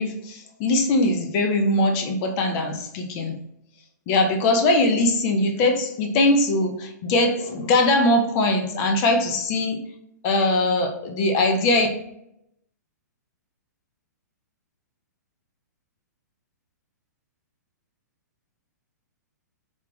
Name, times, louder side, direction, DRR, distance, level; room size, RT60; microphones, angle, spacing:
voice 1, 0.0-3.3 4.1-9.8 10.2-11.9, left 2 dB, 35° left, 4 dB, 0.7 m, -21 dB
3.5 x 2.4 x 3.4 m, 0.77 s
hypercardioid pair, 120°, 10 cm